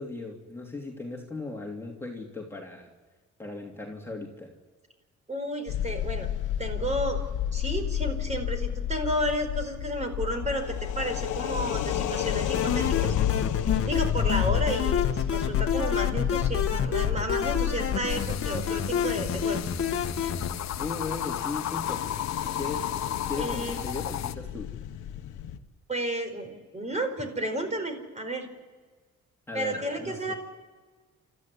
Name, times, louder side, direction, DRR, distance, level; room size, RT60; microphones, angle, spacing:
voice 1, 0.0-2.9 3.4-4.5 20.8-22.0 22.4-23.0 23.3-24.7 29.5-30.3, left 3 dB, 10° left, -1 dB, 3.2 m, -37 dB
voice 2, 5.3-6.3 6.6-7.2 7.5-10.7 10.9-13.1 13.9-19.6 23.4-23.8 25.9-28.5 29.5-30.3, right 1 dB, 25° right, 6 dB, 4.7 m, -32 dB
sound 1, 5.7-25.6, left 10 dB, 85° left, 1.4 m, -31 dB
sound 2, 12.5-20.5, left 7 dB, 50° left, 1.6 m, -29 dB
sound 3, 18.1-24.4, left 11 dB, 65° left, 0.9 m, -34 dB
28.5 x 14.0 x 9.8 m, 1.4 s
cardioid pair, 90°, 30 cm